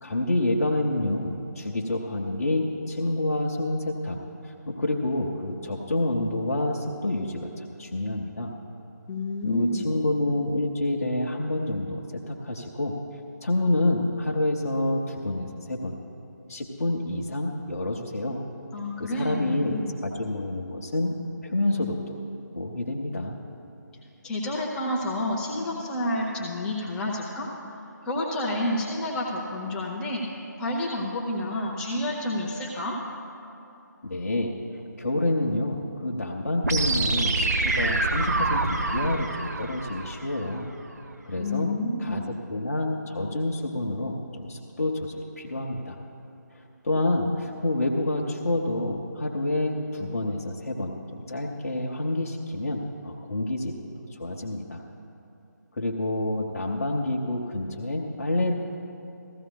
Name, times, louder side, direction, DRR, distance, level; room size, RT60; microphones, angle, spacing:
voice 1, 0.0-8.5 9.4-13.0 13.4-16.0 16.5-18.4 19.0-21.2 21.4-22.2 22.5-23.4 34.0-34.5 35.0-40.7 41.2-41.7 42.0-46.0 46.5-53.8 54.1-54.8 55.7-58.5, left 1 dB, 50° left, 0 dB, 0.9 m, -28 dB
voice 2, 9.1-9.9 18.7-19.9 24.2-27.5 28.0-30.2 30.6-33.0 41.4-42.3, left 1 dB, 5° left, -3 dB, 0.6 m, -29 dB
sound 1, 36.6-40.6, right 2 dB, 55° right, 0.9 m, -26 dB
15.5 x 14.5 x 2.3 m, 2.8 s
figure-of-eight pair, 150°, 10 cm